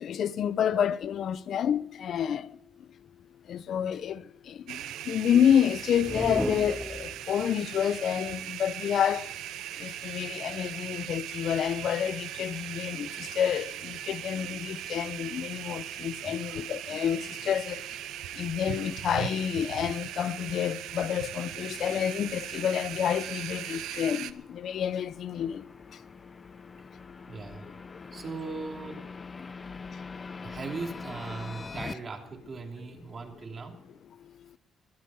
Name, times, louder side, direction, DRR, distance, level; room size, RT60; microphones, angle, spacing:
voice 1, 0.0-2.5 3.5-9.3 9.8-17.8 18.4-25.7, left 9 dB, 65° left, 0.7 m, -29 dB
sound 1, 4.7-24.3, right 12 dB, 90° right, 0.7 m, -39 dB
sound 2, 6.0-7.5, right 1 dB, 5° right, 0.7 m, -34 dB
sound 3, 20.5-31.9, left 4 dB, 30° left, 0.7 m, -45 dB
voice 2, 27.3-27.8 28.1-29.2 30.4-34.0, right 4 dB, 40° right, 3.0 m, -39 dB
22.5 x 8.5 x 5.7 m
cardioid pair, 90°, 0 cm